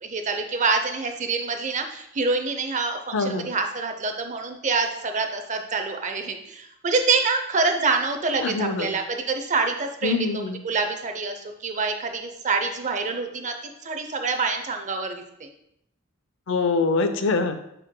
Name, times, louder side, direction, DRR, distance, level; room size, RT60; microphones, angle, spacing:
voice 1, 0.0-15.5, right 4 dB, 35° right, 6 dB, 0.6 m, -26 dB
voice 2, 3.1-3.5 8.4-8.9 10.0-10.6 16.5-17.6, left 4 dB, 65° left, 9 dB, 0.6 m, -24 dB
9.8 x 4.4 x 2.2 m, 0.77 s
head